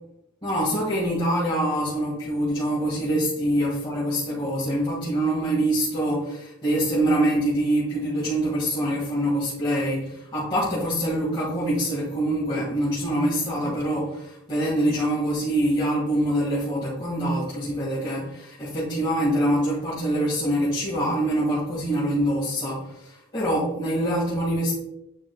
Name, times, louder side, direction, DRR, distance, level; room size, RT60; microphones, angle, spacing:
voice 1, 0.4-24.7, right 1 dB, 25° left, -9 dB, 1.9 m, -25 dB
8.8 x 5.0 x 2.3 m, 0.85 s
head